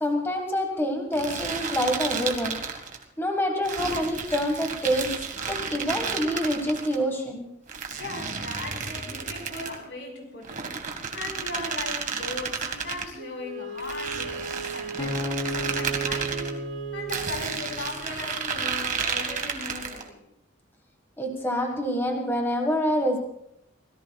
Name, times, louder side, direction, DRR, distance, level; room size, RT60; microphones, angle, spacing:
voice 1, 0.0-2.6 3.2-5.1 5.5-7.5 21.2-23.2, equal, 15° left, 2 dB, 1.7 m, -26 dB
sound 1, 1.1-3.0 3.6-7.0 7.7-9.8 10.4-13.1 13.8-16.5 17.1-20.1, right 5 dB, 45° right, 1.8 m, -32 dB
voice 2, 8.0-10.7 11.1-16.6 16.9-20.2, left 2 dB, 75° left, 2 dB, 4.9 m, -38 dB
Wind instrument woodwind instrument, 13.1-17.6, right 5 dB, 85° right, 4.2 m, -37 dB
sound 2, 15.0-18.2, equal, 30° left, 2.9 m, -34 dB
25.0 x 17.5 x 2.4 m, 0.75 s
head